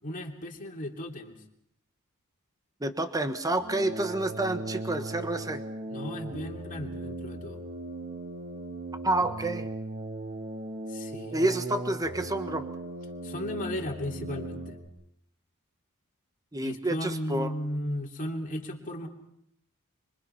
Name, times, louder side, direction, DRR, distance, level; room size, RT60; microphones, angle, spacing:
voice 1, 0.0-1.4 5.9-7.6 10.9-11.4 13.2-14.8 16.6-19.1, left 1 dB, 40° left, 1 dB, 3.0 m, -35 dB
voice 2, 2.8-5.6 9.0-9.7 11.3-12.6 16.5-17.5, right 2 dB, 15° right, 9 dB, 1.4 m, -29 dB
sound 1, 3.6-14.9, right 1 dB, 40° right, 2.9 m, -38 dB
25.5 x 25.0 x 5.8 m, 0.75 s
head